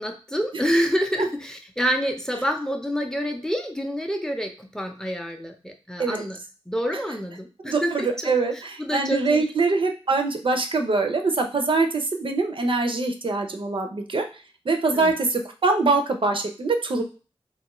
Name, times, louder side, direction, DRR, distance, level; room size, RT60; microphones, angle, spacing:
voice 1, 0.0-6.4 6.7-9.5 14.9-15.1, equal, 5° left, 4 dB, 0.5 m, -27 dB
voice 2, 7.7-14.3 14.7-17.0, right 3 dB, 55° right, 4 dB, 0.5 m, -23 dB
2.8 x 2.3 x 2.9 m, 0.35 s
wide cardioid pair, 95°, 11 cm